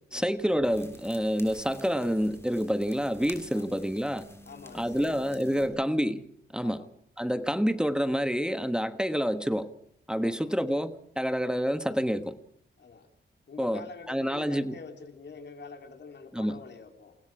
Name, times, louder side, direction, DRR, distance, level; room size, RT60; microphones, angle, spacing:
voice 1, 0.1-4.3 4.7-6.2 6.5-6.8 7.2-9.7 10.1-12.4 13.6-14.7 16.3-16.6, equal, 5° right, 1.3 m, -28 dB
sound 1, 0.6-5.7, left 1 dB, 15° left, 6.6 m, -49 dB
voice 2, 4.5-5.8 6.6-6.9 10.2-10.5 12.8-13.1 13.5-17.2, left 5 dB, 70° left, 3.6 m, -46 dB
28.0 x 21.0 x 4.9 m
cardioid pair, 85°, 18 cm